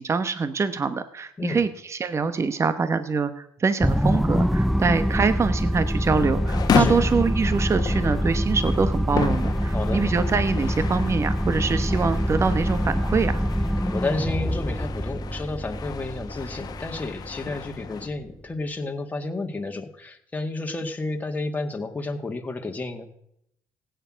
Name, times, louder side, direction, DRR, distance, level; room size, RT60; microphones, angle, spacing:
voice 1, 0.0-13.4, right 5 dB, 35° right, 12 dB, 1.1 m, -24 dB
sound 1, 3.8-18.3, equal, ahead, 0.4 m, -25 dB
sound 2, 6.1-18.1, left 7 dB, 55° left, 1.2 m, -32 dB
voice 2, 13.9-23.1, left 2 dB, 20° left, 3 dB, 2.0 m, -31 dB
16.0 x 9.4 x 6.3 m, 0.75 s
supercardioid pair, 80°, 8 cm